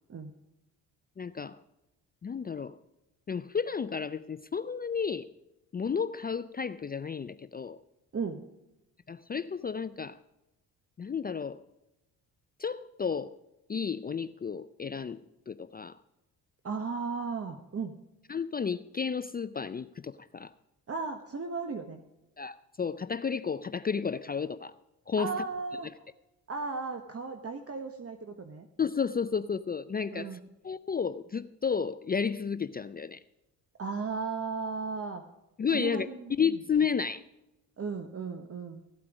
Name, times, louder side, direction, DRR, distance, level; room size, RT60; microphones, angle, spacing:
voice 1, 1.2-1.6 2.2-2.8 3.3-5.3 5.7-7.8 9.1-10.2 11.0-11.6 12.6-13.4 13.7-16.0 18.3-20.5 22.4-24.7 25.1-25.4 28.8-30.4 30.6-33.2 35.6-36.1 36.4-37.2, left 6 dB, 25° left, 14 dB, 0.4 m, -32 dB
voice 2, 16.6-17.9 20.9-22.0 25.2-25.9 26.5-28.7 30.1-30.4 33.8-35.2 35.7-36.6 37.8-38.8, right 4 dB, 35° right, 6 dB, 1.2 m, -35 dB
16.0 x 8.5 x 5.0 m, 0.94 s
supercardioid pair, 55°, 40 cm